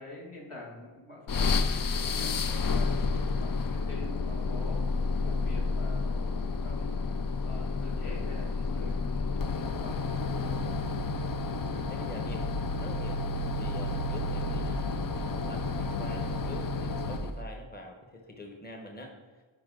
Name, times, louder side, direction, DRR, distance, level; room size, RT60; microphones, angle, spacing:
voice 1, 0.0-10.8, left 2 dB, 75° left, -3 dB, 2.2 m, -46 dB
sound 1, 1.3-17.4, left 3 dB, 45° left, 0.5 m, -30 dB
voice 2, 11.7-12.5 12.8-13.2 13.5-19.1, left 1 dB, 20° left, 3 dB, 1.1 m, -45 dB
9.7 x 5.1 x 3.8 m, 1.4 s
wide cardioid pair, 60°, 50 cm